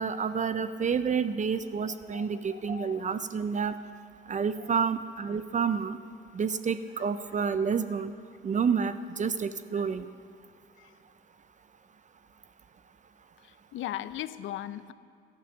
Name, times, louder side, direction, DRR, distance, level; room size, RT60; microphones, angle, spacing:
voice 1, 0.0-3.7 4.3-6.0 6.3-8.1 8.4-10.1, right 6 dB, 40° right, 12 dB, 0.5 m, -29 dB
voice 2, 2.1-3.0 9.8-9.9 10.8-10.9 13.7-14.9, left 13 dB, 80° left, 15 dB, 0.6 m, -38 dB
12.0 x 12.0 x 7.2 m, 2.3 s
cardioid pair, 90°, 20 cm